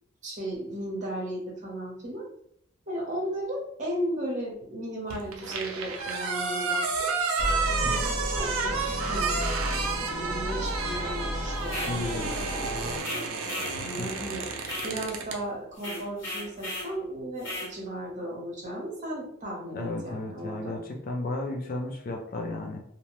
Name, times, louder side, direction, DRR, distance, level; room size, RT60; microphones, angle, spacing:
voice 1, 0.2-2.3 2.9-7.1 7.8-13.2 13.8-14.5 14.8-20.7, right 1 dB, 35° right, -2 dB, 0.9 m, -35 dB
sound 1, 5.1-15.4, right 4 dB, 75° right, 0.4 m, -31 dB
sound 2, 7.4-13.0, equal, 15° left, 0.8 m, -32 dB
sound 3, 11.6-12.0 13.0-13.8 14.6-15.0 15.8-16.9 17.4-17.7, left 1 dB, 60° left, 1.3 m, -35 dB
voice 2, 11.9-12.3 13.8-14.1 19.7-22.8, left 2 dB, 40° left, 2 dB, 0.4 m, -34 dB
2.7 x 2.1 x 3.1 m, 0.71 s
head